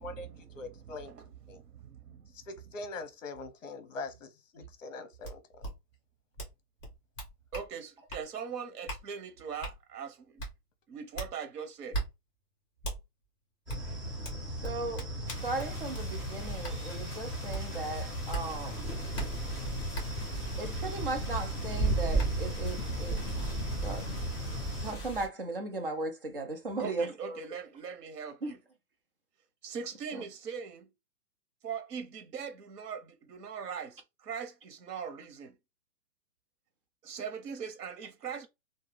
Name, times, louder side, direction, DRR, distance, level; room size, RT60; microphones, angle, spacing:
voice 1, 0.0-2.3 7.5-10.4 10.9-12.0 26.8-28.6 29.6-30.9 31.6-35.6 37.0-38.5, right 7 dB, 90° right, 0.9 m, -41 dB
voice 2, 0.5-1.1 1.5-1.6 2.5-5.7, left 3 dB, 55° left, 0.8 m, -42 dB
sound 1, 5.2-5.3 5.6-5.7 6.4-6.5 6.8-7.7 8.1-8.2 8.9-9.0 9.6-9.7 10.4-10.5 11.1-11.3 11.9-12.1 12.8-13.0 13.7-13.8 14.2-16.1 16.6-16.8 17.5-17.6 18.3-18.4 19.1-19.3 19.9-20.0 21.5-21.6 22.2-22.3, right 2 dB, 15° left, 1.2 m, -37 dB
sound 2, 13.7-24.9, equal, 20° right, 1.2 m, -38 dB
voice 3, 14.6-15.1 15.4-19.0 20.6-24.1 24.8-27.4 28.4-28.5 30.1-30.2, right 3 dB, 40° right, 0.5 m, -37 dB
sound 3, 15.3-25.3, right 2 dB, ahead, 0.7 m, -36 dB
2.7 x 2.2 x 3.2 m
hypercardioid pair, 180°, 46 cm